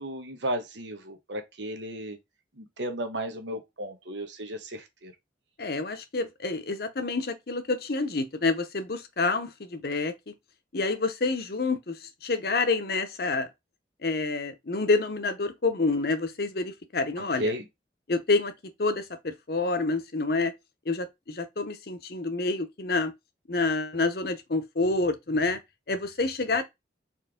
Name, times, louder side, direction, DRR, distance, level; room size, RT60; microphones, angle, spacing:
voice 1, 0.0-2.2 2.6-5.1 17.4-17.6, right 1 dB, 80° right, 1.2 m, -34 dB
voice 2, 5.6-10.3 10.7-13.5 14.0-17.5 18.1-18.5 18.8-20.5 20.9-23.1 23.5-25.6 25.9-26.6, left 3 dB, 55° left, 0.8 m, -28 dB
4.4 x 3.2 x 3.6 m
head